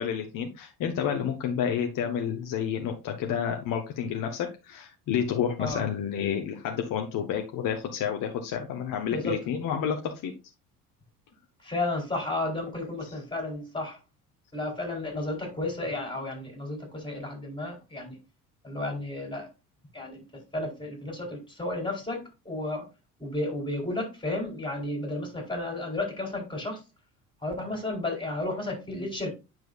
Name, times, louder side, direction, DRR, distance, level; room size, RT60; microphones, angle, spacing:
voice 1, 0.0-10.3, left 8 dB, 45° left, 1.3 m, -30 dB
voice 2, 11.6-14.0 14.5-18.2 18.6-19.5 19.9-22.9 23.2-26.8 27.4-29.3, left 2 dB, 10° left, 4.3 m, -33 dB
9.3 x 6.2 x 2.5 m
figure-of-eight pair, 65°, 47 cm